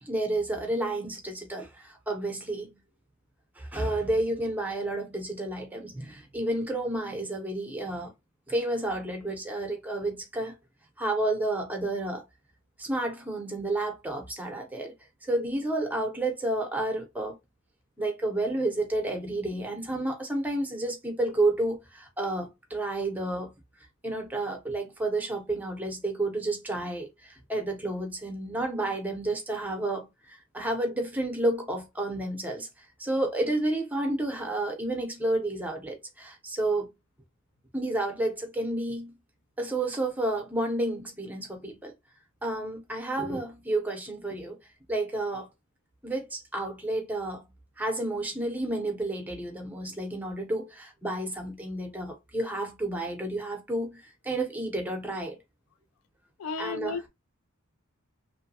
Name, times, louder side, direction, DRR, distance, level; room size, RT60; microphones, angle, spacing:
voice 1, 0.0-2.8 3.6-8.1 8.5-10.6 11.0-12.2 12.8-14.9 15.2-17.4 18.0-23.5 24.0-36.9 37.7-39.1 39.6-41.9 42.4-44.6 44.9-45.5 46.0-47.4 47.8-55.4 56.6-57.0, right 2 dB, 10° right, 0.6 m, -31 dB
voice 2, 56.4-57.1, left 4 dB, 85° left, 0.4 m, -33 dB
3.0 x 2.2 x 2.6 m
head